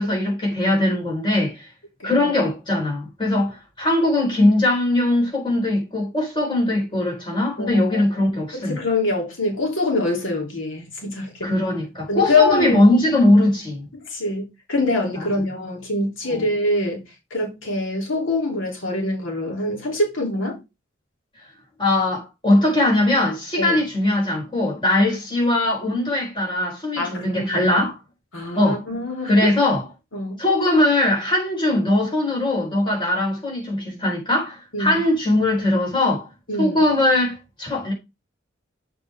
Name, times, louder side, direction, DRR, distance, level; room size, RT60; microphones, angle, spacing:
voice 1, 0.0-1.6 2.0-8.8 11.4-13.9 15.2-15.3 16.3-16.4 21.8-28.0 28.5-28.8 29.2-29.8 30.4-36.3 36.6-37.9, left 1 dB, 25° left, 4.2 m, -20 dB
voice 2, 2.0-2.3 7.6-8.0 8.5-11.5 12.1-12.8 13.9-17.0 17.3-20.6 23.6-23.8 27.0-27.8 28.3-29.5 30.1-30.4 34.7-35.0 36.5-36.8, left 2 dB, 90° left, 3.0 m, -24 dB
7.1 x 5.9 x 3.5 m
head